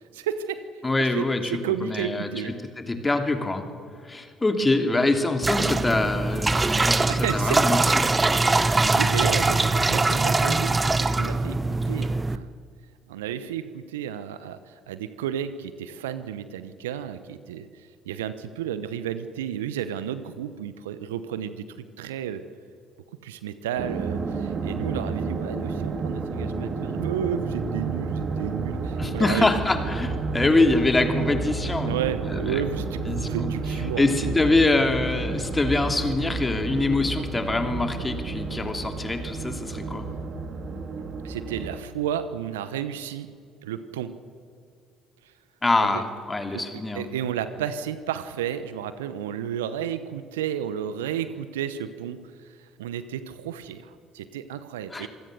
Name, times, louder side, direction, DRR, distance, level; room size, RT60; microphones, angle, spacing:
voice 1, 0.1-0.6 1.0-2.5 4.9-5.1 7.0-7.6 8.6-11.6 11.9-12.5 13.1-22.4 23.2-29.5 30.5-30.6 31.8-34.3 41.2-43.3 43.6-44.1 45.8-46.0 46.5-52.2 52.5-55.1, right 9 dB, 80° right, 13 dB, 0.9 m, -32 dB
voice 2, 0.8-1.5 1.8-2.3 2.8-3.7 4.0-7.8 8.1-8.2 29.0-32.0 32.2-32.6 33.1-33.5 34.0-40.1 45.6-47.1 54.9-55.1, left 2 dB, 20° left, 6 dB, 2.8 m, -24 dB
sound 1, 5.4-12.4, right 3 dB, 20° right, 0.9 m, -22 dB
sound 2, 23.8-41.8, right 4 dB, 45° right, 2.5 m, -31 dB
26.0 x 16.0 x 6.8 m, 2.3 s
figure-of-eight pair, 55°, 0 cm